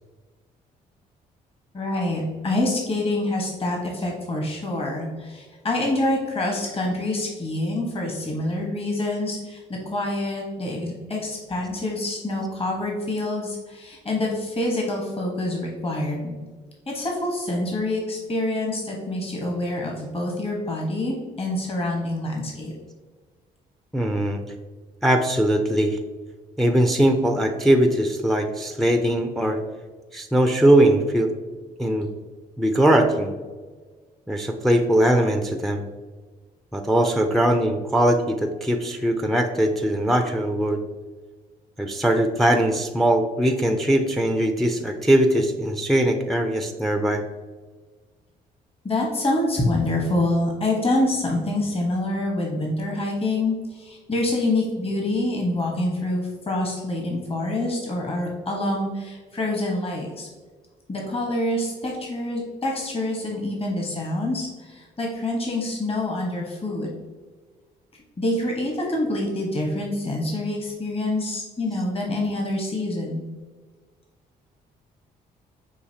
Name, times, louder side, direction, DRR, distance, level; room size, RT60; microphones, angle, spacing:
voice 1, 1.7-16.3 16.9-22.7 48.8-60.3 60.9-66.9 68.2-73.2, left 1 dB, 35° left, -1 dB, 1.2 m, -26 dB
voice 2, 23.9-24.4 25.0-26.0 26.6-29.6 30.1-31.3 31.8-32.1 32.6-33.3 34.3-35.8 36.7-40.8 41.8-47.2, right 1 dB, ahead, 5 dB, 0.4 m, -20 dB
6.3 x 2.8 x 2.8 m, 1.4 s
supercardioid pair, 75°, 17 cm